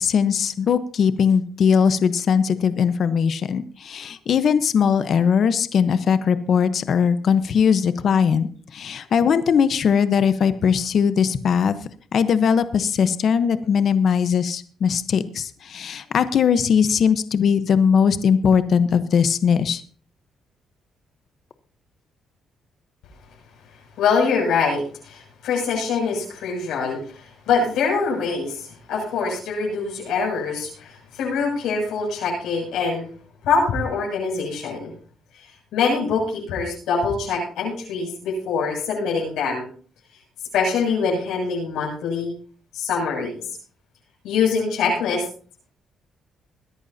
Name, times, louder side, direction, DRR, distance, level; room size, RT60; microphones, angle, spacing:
voice 1, 0.0-11.8 12.1-19.8, left 7 dB, 60° left, 12 dB, 1.0 m, -20 dB
voice 2, 24.0-33.0 33.4-34.9 35.7-39.6 40.5-42.3 42.7-43.4 44.2-45.3, left 5 dB, 85° left, -2 dB, 7.2 m, -24 dB
22.0 x 11.0 x 2.8 m, 0.44 s
cardioid pair, 90°, 0 cm